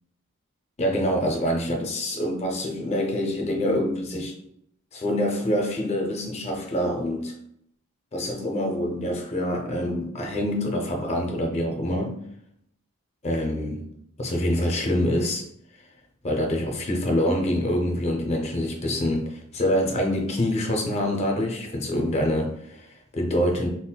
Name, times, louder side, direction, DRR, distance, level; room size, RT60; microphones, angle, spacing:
voice 1, 0.8-4.3 4.9-7.3 8.1-12.2 13.2-13.8 14.2-15.4 16.2-23.7, left 1 dB, 30° left, 1 dB, 0.5 m, -26 dB
3.8 x 2.1 x 2.2 m, 0.71 s
head